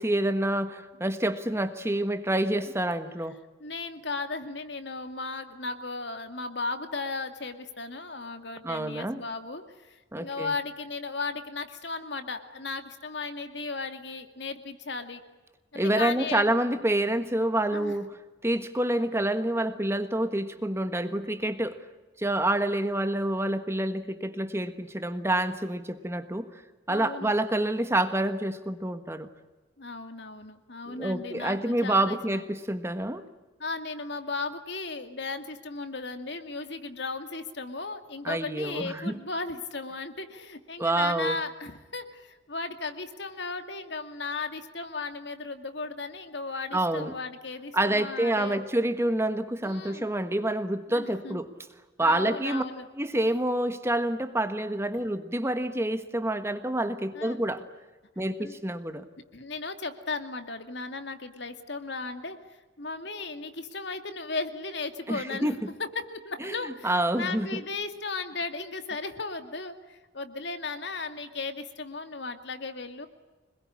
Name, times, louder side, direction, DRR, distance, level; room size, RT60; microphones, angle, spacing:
voice 1, 0.0-3.4 8.6-9.2 10.1-10.5 15.7-18.2 18.4-21.8 22.2-26.5 26.9-29.3 30.9-33.2 38.2-39.1 40.8-41.4 46.7-47.1 47.7-51.5 52.0-52.6 53.0-57.6 58.2-59.0 65.1-65.5 66.4-67.5, right 1 dB, 15° right, 9 dB, 1.4 m, -27 dB
voice 2, 3.6-15.2 15.7-16.5 17.7-17.9 26.9-27.3 29.8-32.4 33.6-48.6 49.6-50.1 50.9-51.4 52.0-52.9 57.1-57.4 58.4-58.6 59.3-62.4 62.8-73.1, left 3 dB, 60° left, 8 dB, 2.4 m, -36 dB
26.5 x 21.0 x 9.9 m, 1.2 s
head